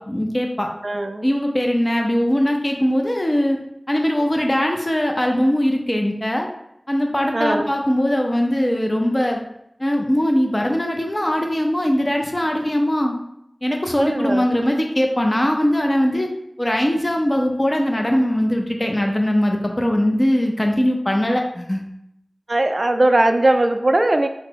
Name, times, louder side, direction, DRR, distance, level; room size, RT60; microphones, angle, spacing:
voice 1, 0.0-0.7 1.2-3.6 3.9-6.5 6.9-9.4 9.8-13.2 13.6-16.3 16.6-21.8, equal, 30° left, 2 dB, 0.5 m, -20 dB
voice 2, 0.8-1.3 7.3-7.7 14.0-14.5 22.5-24.3, right 1 dB, 50° right, 7 dB, 0.3 m, -19 dB
4.9 x 2.0 x 4.5 m, 0.80 s
wide cardioid pair, 50°, 0 cm